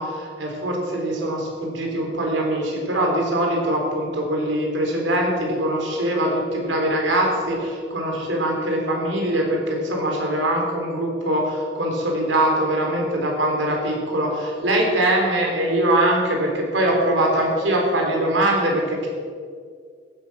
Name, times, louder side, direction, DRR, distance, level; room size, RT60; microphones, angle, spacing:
voice 1, 0.0-19.1, right 1 dB, 75° right, 0 dB, 4.0 m, -22 dB
15.5 x 10.5 x 6.4 m, 2.1 s
head